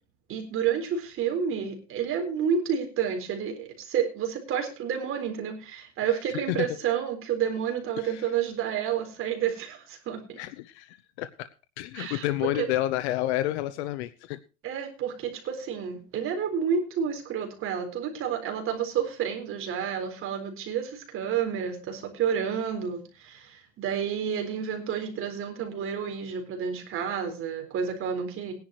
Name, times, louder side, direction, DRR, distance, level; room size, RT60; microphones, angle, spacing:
voice 1, 0.3-10.4 11.9-12.7 14.6-28.5, right 8 dB, 40° right, 4 dB, 4.1 m, -30 dB
voice 2, 8.0-8.3 10.4-11.3 11.8-14.4, left 15 dB, 80° left, 12 dB, 0.9 m, -30 dB
19.0 x 10.5 x 3.0 m, 0.33 s
supercardioid pair, 135°, 33 cm